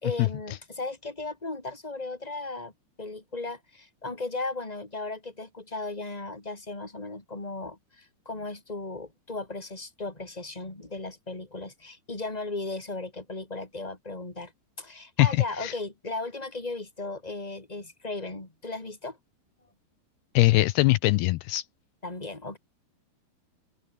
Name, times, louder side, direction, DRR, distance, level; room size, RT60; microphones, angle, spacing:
voice 1, 0.0-2.7 3.0-14.5 14.8-19.2 22.0-22.6, left 3 dB, 10° left, 4.0 m, -36 dB
voice 2, 15.2-15.7 20.3-21.7, left 19 dB, 80° left, 2.5 m, -22 dB
open air
omnidirectional pair, 4.9 m